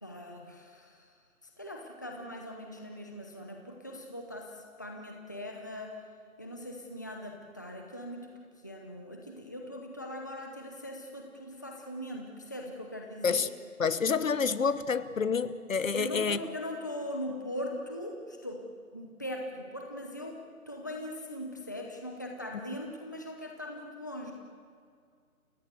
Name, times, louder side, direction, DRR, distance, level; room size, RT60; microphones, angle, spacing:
voice 1, 0.0-1.0 1.6-5.9 6.4-8.3 8.6-13.4 15.9-18.6 18.9-20.4 20.7-24.3, left 1 dB, 15° left, 1 dB, 0.8 m, -40 dB
voice 2, 13.8-16.4, left 5 dB, 60° left, 15 dB, 1.2 m, -28 dB
30.0 x 17.5 x 7.9 m, 2.1 s
hypercardioid pair, 170°, 44 cm